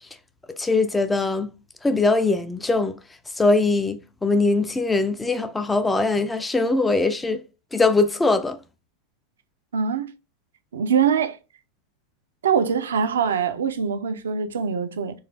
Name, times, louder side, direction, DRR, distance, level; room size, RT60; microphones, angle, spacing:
voice 1, 0.5-1.5 1.8-3.0 3.4-7.4 7.7-8.6, left 3 dB, 10° left, 0.4 m, -21 dB
voice 2, 9.7-10.1 10.7-11.4 12.4-15.2, right 7 dB, 65° right, 0.5 m, -23 dB
4.0 x 2.5 x 3.6 m
figure-of-eight pair, 90°, 0 cm